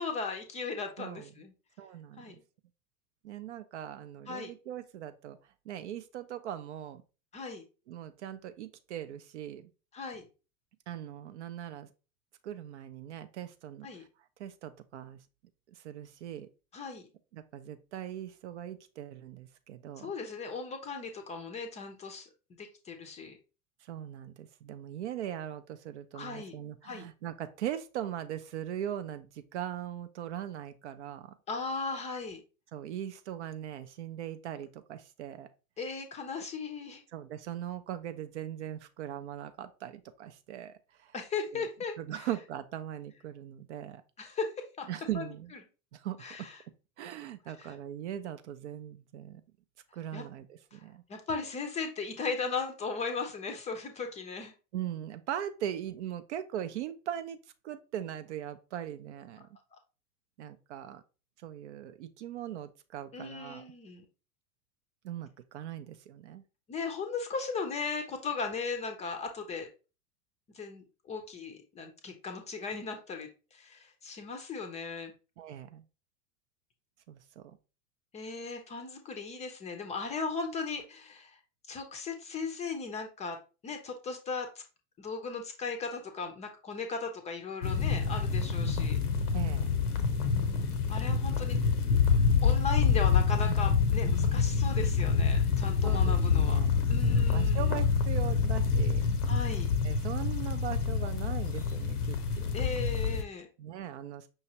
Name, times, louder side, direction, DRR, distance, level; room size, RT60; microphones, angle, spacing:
voice 1, 0.0-1.5 2.2-2.4 4.3-4.5 7.3-7.6 9.9-10.2 13.8-14.0 16.7-17.1 20.0-22.3 22.6-23.4 26.1-26.5 26.8-27.0 31.5-32.4 35.8-37.0 41.1-42.3 44.2-44.9 45.1-45.3 46.2-46.6 47.6-47.7 50.1-50.2 50.7-50.8 51.1-54.5 63.1-64.0 66.7-69.7 70.5-75.1 78.1-81.4 81.7-83.4 83.6-84.6 85.0-89.0 90.9-91.6 92.4-96.6 96.9-97.7 99.3-99.7 102.5-103.5, left 4 dB, 15° left, 5 dB, 0.5 m, -37 dB
voice 2, 1.0-1.3 1.8-2.4 3.2-5.4 5.7-7.0 7.9-9.7 10.9-11.9 12.4-14.1 14.4-15.2 15.7-16.5 17.3-20.1 23.8-31.3 32.7-35.5 37.1-41.1 41.5-41.6 42.0-44.0 44.9-45.5 45.9-46.5 47.0-49.4 49.9-51.0 54.7-57.4 57.6-59.5 60.4-61.0 61.4-63.6 65.0-66.4 75.4-75.8 77.1-77.6 89.3-89.8 95.8-99.1 99.8-102.8 103.6-104.3, right 11 dB, 50° right, 11 dB, 0.5 m, -40 dB
sound 1, 87.6-103.2, left 5 dB, 75° left, 0.8 m, -27 dB
5.6 x 3.1 x 2.8 m, 0.33 s
figure-of-eight pair, 90°, 45 cm